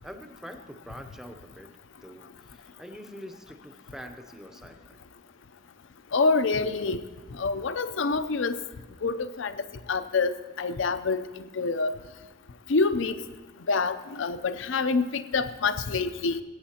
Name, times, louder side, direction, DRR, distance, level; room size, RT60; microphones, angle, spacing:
voice 1, 0.0-1.7 2.0-5.0, equal, 5° right, 5 dB, 0.6 m, -45 dB
voice 2, 6.1-7.0 7.4-8.6 9.0-9.5 9.9-11.3 11.5-11.9 12.7-13.2 13.7-16.4, left 4 dB, 75° left, 11 dB, 0.5 m, -26 dB
20.5 x 9.0 x 2.9 m, 1.3 s
head